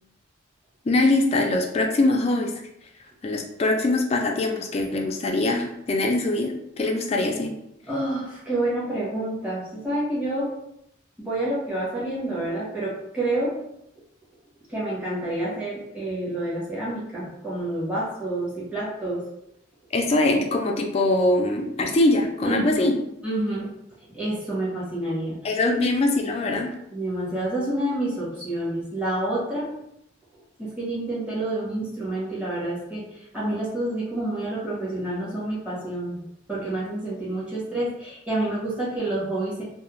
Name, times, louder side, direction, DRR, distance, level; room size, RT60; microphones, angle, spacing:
voice 1, 0.9-2.5 3.2-7.5 19.9-22.9 25.4-26.7, left 2 dB, 35° left, 3 dB, 0.3 m, -22 dB
voice 2, 7.8-10.5 11.2-13.6 14.7-19.3 22.4-22.9 23.2-23.7 24.1-25.9 26.9-29.8 30.6-39.6, right 1 dB, 5° right, -8 dB, 0.9 m, -28 dB
2.4 x 2.0 x 3.0 m, 0.79 s
head